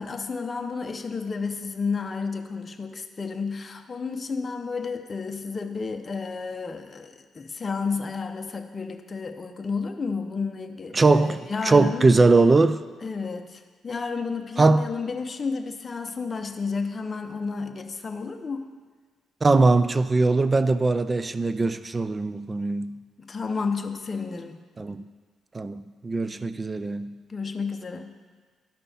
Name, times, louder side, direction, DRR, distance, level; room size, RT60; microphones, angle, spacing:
voice 1, 0.0-12.1 13.0-18.7 23.2-24.6 27.3-28.2, left 4 dB, 35° left, 0.7 m, -31 dB
voice 2, 10.9-12.8 14.6-14.9 19.4-23.0 24.8-25.0 25.5-27.1, right 3 dB, 25° right, 0.4 m, -21 dB
12.0 x 5.4 x 4.2 m
cardioid pair, 90°, 0 cm